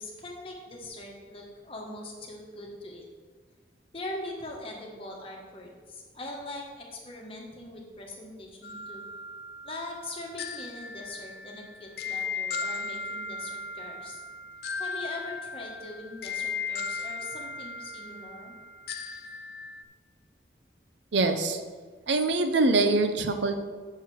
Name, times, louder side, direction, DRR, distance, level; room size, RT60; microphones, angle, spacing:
voice 1, 0.0-3.0 3.9-9.0 9.6-14.2 14.8-18.5, left 1 dB, 30° left, -1 dB, 1.2 m, -41 dB
sound 1, 8.6-19.8, left 4 dB, 60° left, 0.4 m, -37 dB
voice 2, 21.1-21.6 22.1-23.5, right 3 dB, 85° right, 7 dB, 0.7 m, -24 dB
6.7 x 6.4 x 4.7 m, 1.5 s
head